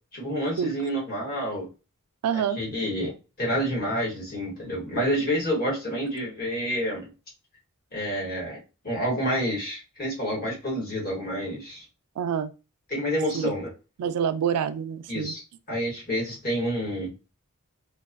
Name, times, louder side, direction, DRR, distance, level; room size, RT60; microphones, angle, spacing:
voice 1, 0.1-1.7 2.6-7.1 7.9-11.8 12.9-13.7 15.1-15.4 15.7-17.1, equal, 45° left, 1.2 m, -28 dB
voice 2, 2.2-2.6 12.2-12.5 13.3-13.5 14.0-15.3, right 8 dB, 85° right, 0.3 m, -27 dB
2.4 x 2.3 x 2.5 m
head